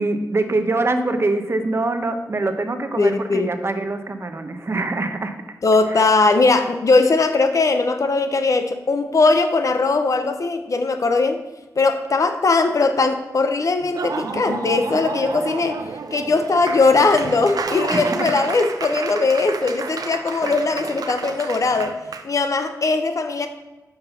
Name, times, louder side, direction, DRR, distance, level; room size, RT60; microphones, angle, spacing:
voice 1, 0.0-5.3 5.9-6.0 17.9-18.3, right 2 dB, 45° right, 7 dB, 0.8 m, -24 dB
voice 2, 3.0-3.5 5.6-11.4 11.8-22.0 22.2-23.5, left 3 dB, 60° left, 7 dB, 0.7 m, -19 dB
Laughter / Applause, 13.8-22.2, right 4 dB, 80° right, 0.6 m, -30 dB
5.6 x 5.3 x 5.6 m, 1.1 s
cardioid pair, 65°, 6 cm